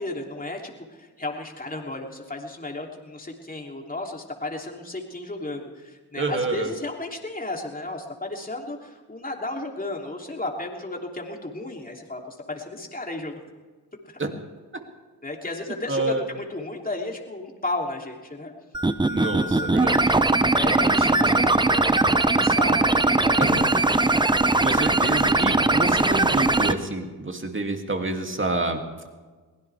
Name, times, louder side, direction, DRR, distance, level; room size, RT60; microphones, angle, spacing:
voice 1, 0.0-13.4 14.1-14.2 15.2-18.5 19.2-19.8 20.5-23.9, left 2 dB, 20° left, 1 dB, 3.1 m, -34 dB
voice 2, 6.2-6.7 14.2-14.3 15.9-16.2 19.0-20.2 20.6-21.4 23.4-23.6 24.6-28.8, right 2 dB, 25° right, 4 dB, 2.6 m, -28 dB
sound 1, 18.7-26.7, right 2 dB, 10° right, 0.8 m, -20 dB
23.0 x 16.5 x 3.5 m, 1.4 s
supercardioid pair, 45°, 44 cm